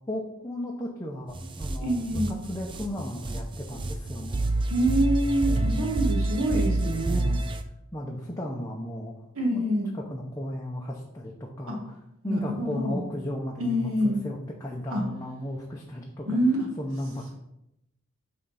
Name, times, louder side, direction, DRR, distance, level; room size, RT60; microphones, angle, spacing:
voice 1, 0.1-4.5 5.4-5.7 7.0-7.4 7.9-9.1 9.5-9.6 9.9-12.0 12.2-16.4 16.8-17.3, left 1 dB, 15° left, -2 dB, 0.7 m, -35 dB
sound 1, 1.3-7.6, right 2 dB, 20° right, 0.4 m, -28 dB
voice 2, 1.8-2.3 4.7-7.2 9.4-9.9 11.7-11.8 12.3-13.0 13.6-14.2 14.9-15.0 16.3-16.7, right 1 dB, 70° right, -1 dB, 1.7 m, -26 dB
9.0 x 3.8 x 5.6 m, 0.84 s
head